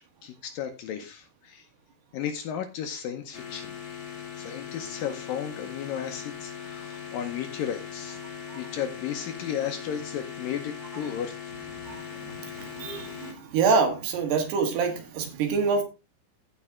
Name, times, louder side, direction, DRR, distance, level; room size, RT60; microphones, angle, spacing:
voice 1, 0.2-1.7 2.1-3.7 4.4-8.2 8.5-11.4, left 9 dB, 75° left, 7 dB, 2.2 m, -34 dB
sound 1, 3.3-13.3, left 8 dB, 45° left, 2.9 m, -40 dB
voice 2, 11.8-15.8, right 5 dB, 75° right, 5 dB, 3.7 m, -26 dB
15.5 x 5.5 x 3.6 m, 0.29 s
omnidirectional pair, 4.8 m